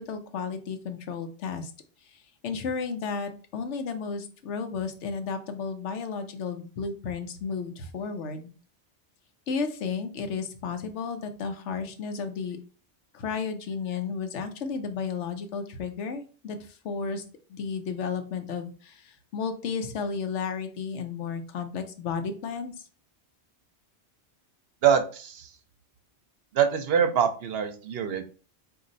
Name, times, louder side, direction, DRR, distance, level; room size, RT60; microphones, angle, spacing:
voice 1, 0.0-1.7 2.1-8.5 9.5-12.6 13.1-17.2 17.5-22.7, left 5 dB, 85° left, 8 dB, 1.0 m, -33 dB
voice 2, 24.8-25.5 26.5-28.2, right 8 dB, 65° right, 8 dB, 0.8 m, -24 dB
4.1 x 2.7 x 3.8 m, 0.38 s
omnidirectional pair, 1.2 m